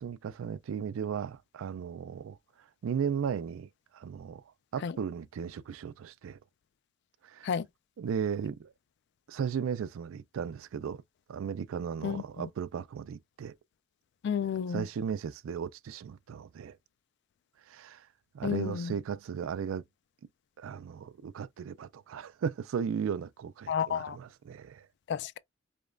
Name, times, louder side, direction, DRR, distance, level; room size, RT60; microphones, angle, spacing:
voice 1, 0.0-2.4 2.8-4.4 4.7-6.4 7.2-7.5 8.0-8.7 9.3-11.0 11.3-13.5 14.7-16.8 17.7-18.1 18.3-19.8 20.6-24.9, right 7 dB, 80° right, 0.3 m, -36 dB
voice 2, 12.0-12.5 14.2-14.8 18.4-18.9 23.7-24.2 25.1-25.4, left 7 dB, 55° left, 0.3 m, -31 dB
5.0 x 2.3 x 2.4 m
head